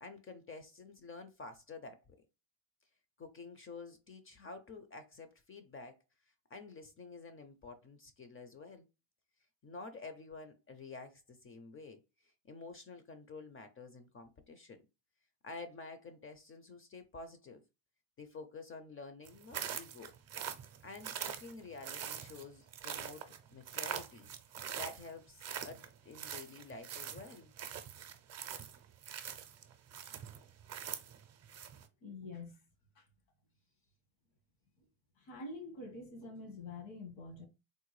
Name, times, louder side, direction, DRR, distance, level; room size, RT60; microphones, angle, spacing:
voice 1, 0.0-2.2 3.2-6.0 6.5-8.9 9.6-12.0 12.4-14.8 15.4-17.6 18.2-20.1 20.8-23.2 23.5-24.3 24.8-27.5, left 3 dB, 30° left, 0.4 m, -50 dB
sound 1, 19.2-31.9, right 9 dB, 35° right, 0.5 m, -43 dB
voice 2, 32.0-32.6 32.9-33.1 34.8-34.9 35.2-37.5, left 3 dB, 80° left, 1.5 m, -46 dB
3.6 x 2.2 x 3.1 m
cardioid pair, 110°, 47 cm